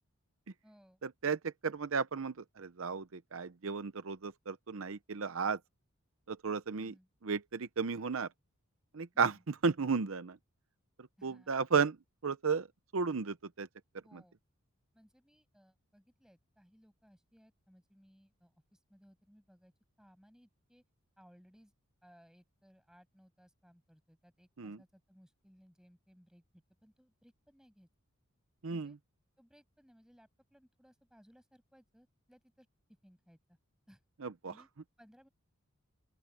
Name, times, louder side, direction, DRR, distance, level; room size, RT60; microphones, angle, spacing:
voice 1, 0.6-1.0 6.7-7.1 9.1-9.4 11.2-11.5 14.0-14.4 14.9-19.7 20.0-20.8 21.2-21.7 22.0-27.9 28.7-29.0 29.4-32.7 33.0-33.6 33.9-34.0 34.5-34.7 35.0-35.3, equal, 5° right, 7.8 m, -63 dB
voice 2, 1.2-5.6 6.3-6.9 7.2-8.3 8.9-10.4 11.2-12.0 12.2-12.7 12.9-13.7 24.6-24.8 28.6-28.9 34.2-34.5, right 5 dB, 65° right, 0.7 m, -34 dB
open air
head